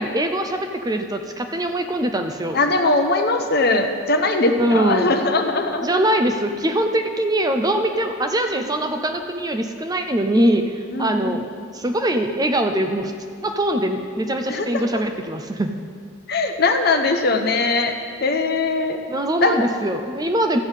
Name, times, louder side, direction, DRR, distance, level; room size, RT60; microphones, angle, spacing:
voice 1, 0.0-2.6 4.6-5.2 5.8-11.5 11.7-13.1 13.4-15.7 19.1-20.6, right 1 dB, 20° right, 6 dB, 0.5 m, -22 dB
voice 2, 2.5-5.9 10.9-11.4 14.5-15.0 16.3-17.9 18.2-19.0 19.4-19.7, left 3 dB, 50° left, 5 dB, 0.9 m, -20 dB
13.0 x 5.5 x 8.1 m, 2.1 s
head